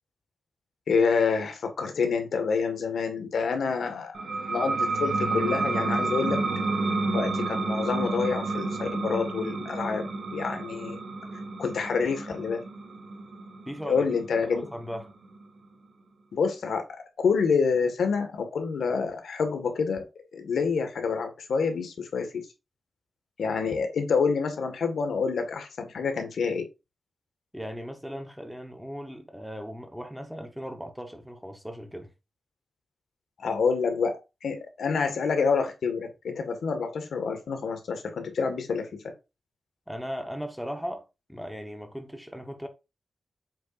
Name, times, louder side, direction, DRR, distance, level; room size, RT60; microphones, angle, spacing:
voice 1, 0.9-6.4 7.1-11.0 11.6-12.6 13.8-14.6 16.3-20.1 20.3-22.4 23.4-26.7 33.4-39.1, left 5 dB, 80° left, 1.8 m, -27 dB
sound 1, 4.1-15.4, right 3 dB, 65° right, 2.1 m, -30 dB
voice 2, 13.7-14.1 14.4-15.1 27.5-32.1 39.9-42.7, equal, ahead, 1.2 m, -38 dB
7.8 x 6.3 x 2.6 m
wide cardioid pair, 145°, 0 cm